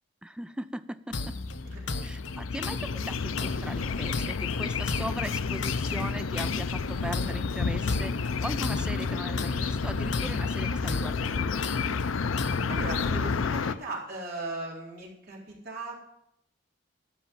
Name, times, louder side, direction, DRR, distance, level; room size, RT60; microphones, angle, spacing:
voice 1, 0.2-1.4 2.0-11.7, right 1 dB, 5° right, 12 dB, 0.3 m, -39 dB
sound 1, 1.1-13.7, left 5 dB, 85° left, 0.5 m, -30 dB
sound 2, 1.1-13.1, left 3 dB, 65° left, 0.9 m, -36 dB
voice 2, 12.7-15.9, right 2 dB, 50° right, -4 dB, 4.1 m, -37 dB
13.5 x 5.7 x 7.6 m, 0.80 s
head